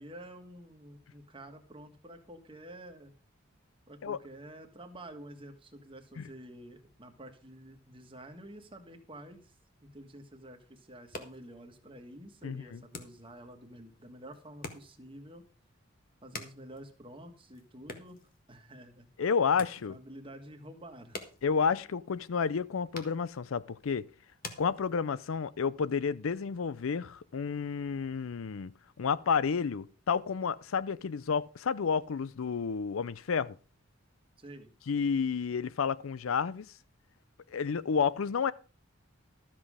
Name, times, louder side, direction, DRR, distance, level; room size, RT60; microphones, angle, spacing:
voice 1, 0.0-3.1 3.9-9.5 9.8-15.4 16.2-18.2 18.5-19.1 19.8-21.2 34.4-34.7, right 1 dB, 25° right, 1.6 m, -49 dB
sound 1, 10.9-25.4, left 3 dB, 45° left, 1.6 m, -50 dB
voice 2, 12.4-12.8 19.2-20.0 21.4-24.1 24.6-28.7 29.0-33.5 34.9-36.7 37.5-38.5, left 6 dB, 75° left, 0.5 m, -30 dB
13.0 x 7.5 x 4.9 m
head